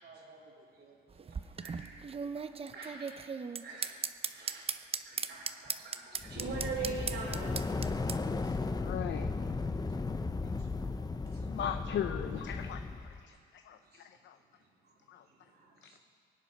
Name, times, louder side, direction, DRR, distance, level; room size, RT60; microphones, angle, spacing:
voice 1, 0.0-1.8 2.4-2.6 5.1-5.3 7.9-9.1 9.8-11.5 13.1-13.4 13.7-16.0, right 3 dB, 55° right, -1 dB, 2.9 m, -63 dB
mysounds-Louna-cartable et crayon, 1.1-8.2, right 5 dB, 30° right, 0.6 m, -37 dB
voice 2, 1.6-2.0 2.3-3.1 3.6-3.9 4.3-4.6 5.0-7.6, right 4 dB, 80° right, -6 dB, 3.5 m, -41 dB
sound 1, 6.2-13.2, left 3 dB, 20° left, 0.6 m, -35 dB
voice 3, 8.7-9.3 11.5-12.8 13.2-13.4 13.7-13.8 14.2-14.4 15.1-15.2 15.8-16.0, left 9 dB, 70° left, 7 dB, 0.7 m, -37 dB
23.5 x 8.5 x 5.7 m, 2.4 s
cardioid pair, 90°, 20 cm